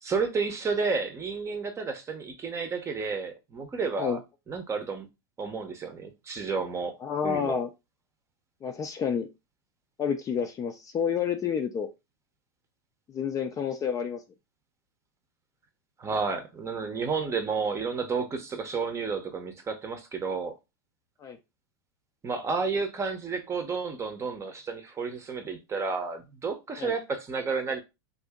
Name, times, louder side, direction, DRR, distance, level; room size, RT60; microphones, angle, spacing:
voice 1, 0.0-4.2 4.5-5.1 5.4-7.0 7.2-7.6 16.0-20.5 22.2-27.8, right 4 dB, 20° right, 0.8 m, -31 dB
voice 2, 7.0-7.7 8.6-9.3 10.0-11.9 13.1-14.2 21.2-21.4 26.8-26.9, left 7 dB, 25° left, 0.5 m, -29 dB
2.7 x 2.7 x 3.5 m
hypercardioid pair, 110°, 13 cm